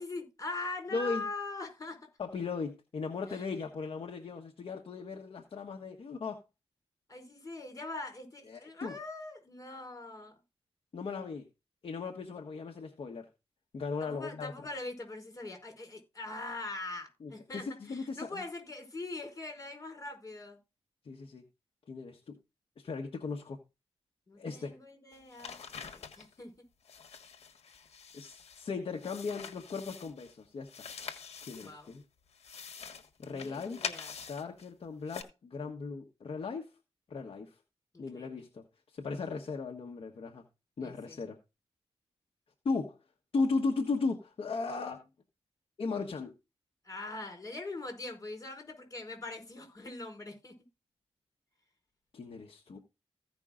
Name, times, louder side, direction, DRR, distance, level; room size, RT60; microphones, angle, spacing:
voice 1, 0.0-2.0 3.3-3.4 7.1-10.4 14.0-20.6 24.3-26.5 31.6-31.9 33.3-34.1 37.9-38.3 40.8-41.2 46.8-50.5, left 2 dB, 30° left, 5.0 m, -42 dB
voice 2, 0.9-1.2 2.2-6.4 8.5-8.9 10.9-11.5 11.8-13.3 13.7-14.5 17.2-18.4 21.0-21.4 21.9-22.3 22.8-23.6 24.4-24.7 28.1-30.7 31.4-32.0 33.2-33.9 34.3-36.7 37.1-37.5 38.0-38.6 38.9-40.4 40.8-41.4 42.6-43.0 43.3-45.0 45.8-46.3 52.1-52.8, left 4 dB, 60° left, 1.2 m, -37 dB
sound 1, 25.1-26.3 26.8-28.7 29.0-30.3 30.6-32.0 32.3-34.7 35.1-35.2, left 6 dB, 80° left, 1.4 m, -45 dB
15.5 x 5.4 x 3.7 m
wide cardioid pair, 125°, 11 cm